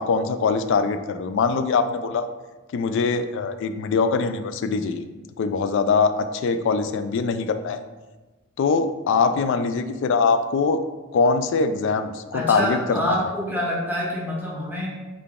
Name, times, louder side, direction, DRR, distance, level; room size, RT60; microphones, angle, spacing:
voice 1, 0.0-2.3 2.7-5.1 5.4-7.8 8.6-10.8 11.1-13.2, left 4 dB, 60° left, 10 dB, 0.3 m, -22 dB
voice 2, 12.3-14.9, equal, 10° right, -5 dB, 0.7 m, -26 dB
3.9 x 3.3 x 3.5 m, 1.2 s
head